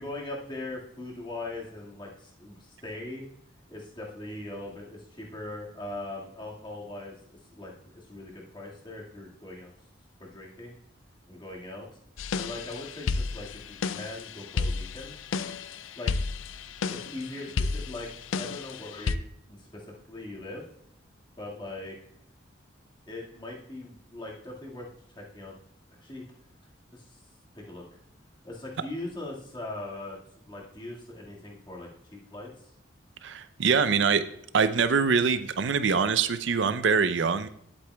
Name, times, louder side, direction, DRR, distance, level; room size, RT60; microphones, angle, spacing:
voice 1, 0.0-3.3 3.7-7.1 7.5-9.7 10.2-10.7 11.3-11.8 12.3-15.2 16.0-16.2 16.9-19.2 19.5-20.6 21.4-21.9 23.1-24.9 25.1-25.5 26.0-26.2 26.9-27.1 27.5-27.8 28.4-30.2 30.5-32.6, left 2 dB, 25° left, -3 dB, 1.8 m, -40 dB
sound 1, 12.2-19.1, left 4 dB, 85° left, 0.4 m, -32 dB
voice 2, 33.2-34.2 34.5-37.5, right 5 dB, 70° right, 12 dB, 0.5 m, -24 dB
11.0 x 8.3 x 2.3 m, 0.70 s
head